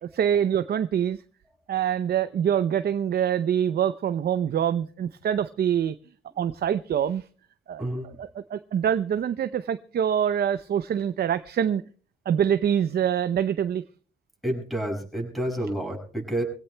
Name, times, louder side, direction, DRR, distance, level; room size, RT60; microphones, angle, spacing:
voice 1, 0.0-1.2 1.7-6.0 6.4-7.2 7.7-11.8 12.3-13.8, right 9 dB, 55° right, 11 dB, 0.6 m, -25 dB
voice 2, 14.4-16.4, right 1 dB, ahead, 2 dB, 6.4 m, -29 dB
25.0 x 16.5 x 2.3 m, 0.42 s
cardioid pair, 90°, 20 cm